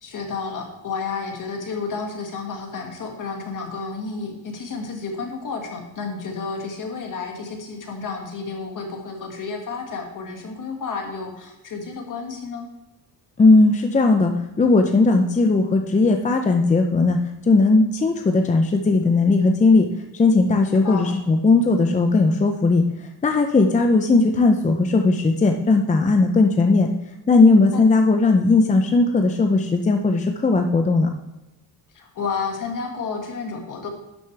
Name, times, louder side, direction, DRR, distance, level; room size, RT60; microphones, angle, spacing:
voice 1, 0.0-12.7 20.7-21.2 31.9-33.9, left 4 dB, 50° left, 2 dB, 1.9 m, -31 dB
voice 2, 13.4-14.3 14.6-17.2 17.5-19.9 20.1-22.8 23.2-26.9 27.3-31.1, left 3 dB, 20° left, 5 dB, 0.6 m, -17 dB
11.5 x 6.6 x 3.3 m, 1.0 s
cardioid pair, 120°, 39 cm